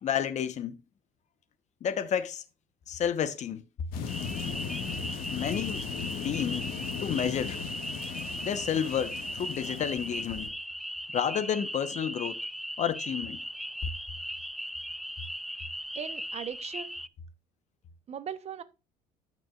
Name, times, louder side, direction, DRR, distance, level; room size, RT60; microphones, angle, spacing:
voice 1, 0.0-0.8 1.8-2.4 2.9-3.6 5.3-5.9 6.2-6.7 7.0-7.6 8.4-10.5 11.1-12.4 12.8-13.4, left 8 dB, 50° left, 1.1 m, -30 dB
sound 1, 3.9-10.5, left 7 dB, 75° left, 1.9 m, -37 dB
sound 2, 4.1-17.1, equal, ahead, 0.3 m, -38 dB
voice 2, 15.9-17.0 18.1-18.6, right 8 dB, 45° right, 1.0 m, -38 dB
13.5 x 6.1 x 2.5 m
cardioid pair, 100°, 16 cm